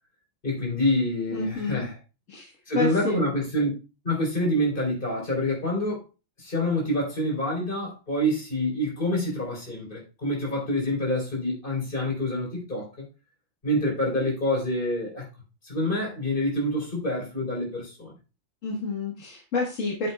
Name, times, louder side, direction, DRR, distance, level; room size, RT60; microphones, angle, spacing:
voice 1, 0.4-2.0 2.7-3.7 4.0-6.0 6.4-13.0 13.6-15.3 15.6-18.1, left 1 dB, 40° left, -1 dB, 3.7 m, -27 dB
voice 2, 1.3-1.9 2.3-3.2 18.6-20.1, left 3 dB, 70° left, -2 dB, 1.7 m, -29 dB
9.1 x 7.6 x 2.2 m, 0.30 s
omnidirectional pair, 1.3 m